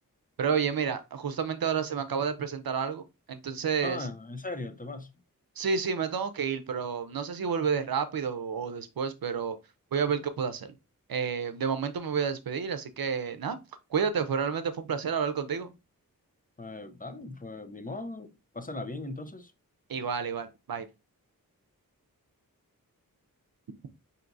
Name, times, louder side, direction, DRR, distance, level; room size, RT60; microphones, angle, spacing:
voice 1, 0.4-4.1 5.6-9.6 9.9-10.7 11.1-13.6 13.9-15.8 19.9-20.9, right 6 dB, 80° right, 0.6 m, -30 dB
voice 2, 3.8-5.1 16.6-19.5, left 2 dB, 25° left, 0.5 m, -38 dB
5.8 x 2.7 x 2.6 m
wide cardioid pair, 85°, 35 cm